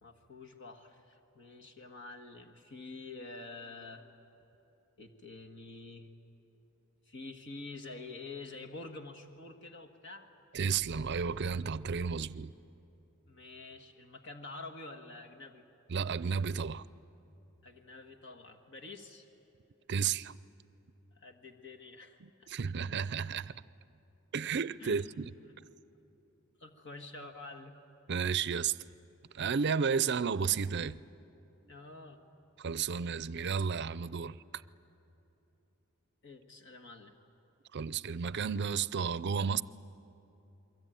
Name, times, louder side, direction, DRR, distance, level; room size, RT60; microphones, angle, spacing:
voice 1, 0.0-4.0 5.0-6.1 7.0-10.3 13.3-15.6 17.6-19.3 21.1-22.5 24.8-25.2 25.5-25.7 26.6-27.8 31.7-32.2 36.2-37.1, left 3 dB, 60° left, 1.6 m, -48 dB
voice 2, 10.5-12.5 15.9-16.8 19.9-20.4 22.2-23.5 24.3-25.3 28.1-28.8 29.3-31.0 32.6-34.6 37.7-39.6, right 6 dB, 55° right, 0.5 m, -32 dB
28.5 x 23.0 x 9.1 m
head